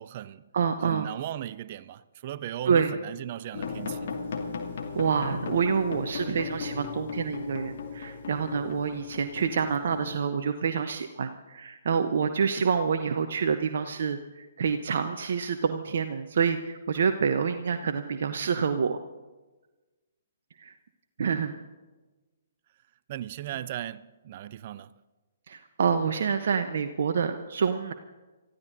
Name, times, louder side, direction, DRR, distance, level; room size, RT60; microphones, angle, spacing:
voice 1, 0.0-0.5 0.8-4.1 23.1-24.9, right 12 dB, 45° right, 0.4 m, -37 dB
voice 2, 0.5-1.1 2.7-3.0 4.9-19.0 20.6-20.7 21.2-21.5 25.5-27.9, right 6 dB, 60° right, 0.8 m, -27 dB
sound 1, 3.5-10.3, left 5 dB, 55° left, 2.2 m, -36 dB
29.0 x 15.0 x 2.6 m
figure-of-eight pair, 125°, 0 cm